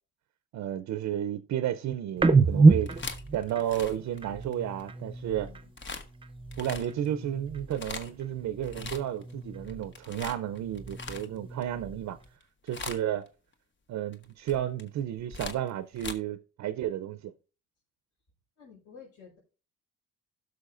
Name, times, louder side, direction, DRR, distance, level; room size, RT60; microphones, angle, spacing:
voice 1, 0.5-2.9 3.3-5.5 6.6-12.2 12.6-13.3 13.9-17.3, right 11 dB, 70° right, 0.6 m, -32 dB
sound 1, 2.2-5.7 6.1-7.9 8.2-10.0 10.4-12.2, right 3 dB, 15° right, 0.7 m, -28 dB
voice 2, 2.5-2.9 5.3-5.7 18.6-19.4, left 7 dB, 60° left, 4.7 m, -52 dB
sound 2, 2.7-4.8 5.8-6.1 6.5-7.1 7.6-8.2 8.6-9.3 9.6-11.6 12.2-12.4 12.7-13.3 14.1-16.1, left 4 dB, 40° left, 1.1 m, -40 dB
16.5 x 6.2 x 2.5 m
cardioid pair, 90°, 30 cm